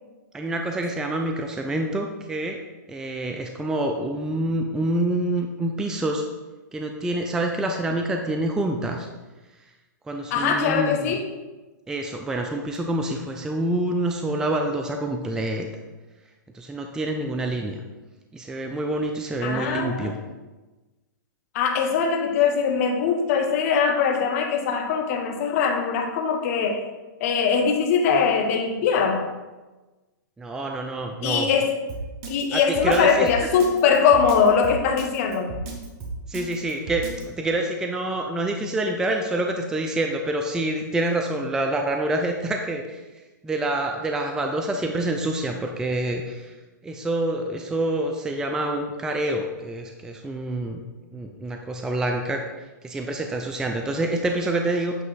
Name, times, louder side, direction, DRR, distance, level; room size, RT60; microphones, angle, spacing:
voice 1, 0.3-2.6 2.9-6.2 6.7-9.1 10.1-11.2 11.9-15.7 16.5-17.8 18.3-20.1 30.4-31.5 32.5-33.3 36.3-43.0 43.4-46.6 46.8-50.8 51.1-52.4 52.8-55.0, right 1 dB, 5° right, 3 dB, 0.3 m, -27 dB
voice 2, 10.3-11.3 19.4-20.1 21.5-26.8 27.2-29.3 31.2-31.8 32.3-35.6, left 6 dB, 50° left, 3 dB, 1.0 m, -21 dB
Drum kit, 31.9-37.2, right 3 dB, 40° right, 1.2 m, -34 dB
8.1 x 3.0 x 4.0 m, 1.2 s
hypercardioid pair, 135°, 11 cm